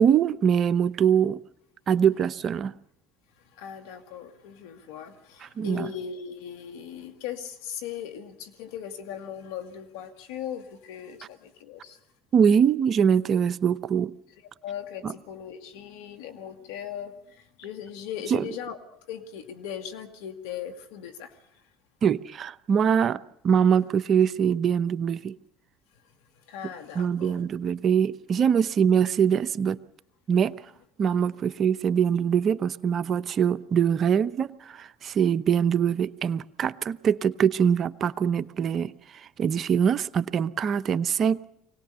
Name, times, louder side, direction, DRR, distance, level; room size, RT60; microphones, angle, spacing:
voice 1, 0.0-1.4 1.9-2.7 5.6-5.9 12.3-14.1 15.0-15.1 18.3-18.4 22.0-25.4 27.0-29.8 30.3-30.5 31.0-38.9 39.4-41.4, right 7 dB, 50° right, 0.8 m, -23 dB
voice 2, 3.5-12.0 14.6-21.6 26.5-27.4, left 8 dB, 80° left, 2.2 m, -38 dB
24.5 x 18.5 x 6.9 m
hypercardioid pair, 75°, 0 cm